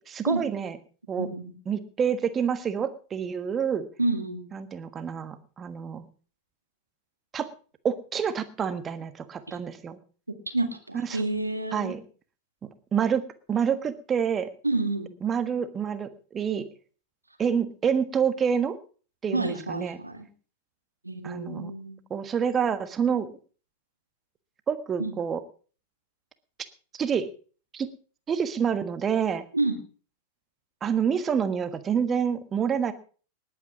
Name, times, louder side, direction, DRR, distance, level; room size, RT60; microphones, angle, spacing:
voice 1, 0.1-0.8 1.1-1.3 1.7-3.8 4.5-6.1 7.3-7.5 7.8-10.0 10.9-11.2 11.7-12.0 12.9-14.5 15.2-16.7 17.4-18.8 19.2-20.0 21.2-21.7 22.1-23.3 24.7-25.4 26.9-27.3 27.7-27.9 28.3-29.4 30.8-32.9, right 7 dB, 25° right, 12 dB, 1.4 m, -27 dB
voice 2, 1.2-1.5 4.0-4.5 9.5-9.6 10.3-12.0 14.6-15.1 19.3-20.3 21.0-22.0 25.0-25.1 29.5-29.8, right 2 dB, 85° right, 7 dB, 2.0 m, -29 dB
19.5 x 8.8 x 5.1 m, 0.40 s
figure-of-eight pair, 90°, 0 cm